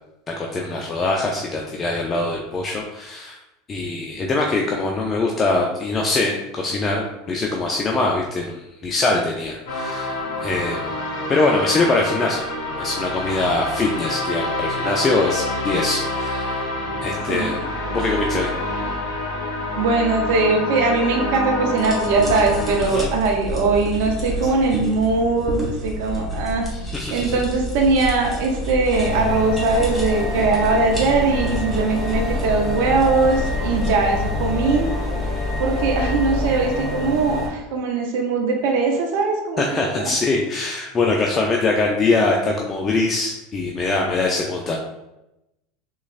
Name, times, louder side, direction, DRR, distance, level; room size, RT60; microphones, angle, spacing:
voice 1, 0.3-3.4 3.7-11.0 11.3-12.4 12.8-16.6 17.0-17.6 17.9-18.5 22.9-23.1 24.4-24.5 26.7-27.4 39.6-44.8, left 3 dB, 30° left, 0 dB, 0.5 m, -23 dB
ancient addventure music by kris klavenes, 9.7-22.9, left 1 dB, 65° left, 1.3 m, -27 dB
voice 2, 19.8-26.7 27.1-34.9 35.6-40.1, right 3 dB, 65° right, 1 dB, 0.6 m, -20 dB
sound 1, 21.8-33.9, equal, 10° left, 1.4 m, -30 dB
sound 2, 28.9-37.5, left 2 dB, 10° right, 1.5 m, -26 dB
3.9 x 3.0 x 2.5 m, 0.91 s
hypercardioid pair, 90°, 0 cm